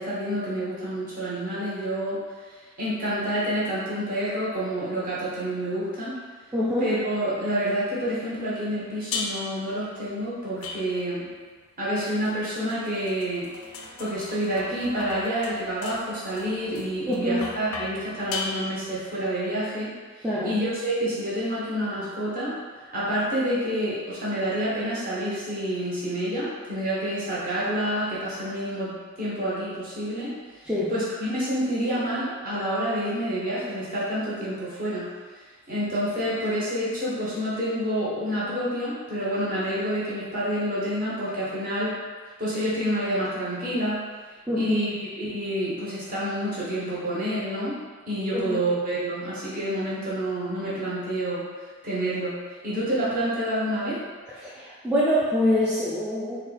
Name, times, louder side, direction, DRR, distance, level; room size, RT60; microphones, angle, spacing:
voice 1, 0.0-2.2 2.8-6.2 6.8-11.3 11.8-13.5 14.0-22.5 22.9-30.3 30.9-35.1 35.7-42.0 42.4-44.0 44.5-47.8 48.1-51.4 51.8-52.4 52.6-54.0, equal, 40° right, -9 dB, 1.3 m, -28 dB
voice 2, 6.5-6.9 17.1-17.4 20.2-20.5 30.7-30.9 44.5-44.8 48.3-48.6 54.4-56.4, left 1 dB, 5° right, -10 dB, 0.4 m, -25 dB
sound 1, 9.1-9.7 10.6-11.3 12.2-19.1, left 3 dB, 85° left, 0.5 m, -37 dB
4.0 x 2.4 x 4.2 m, 1.5 s
head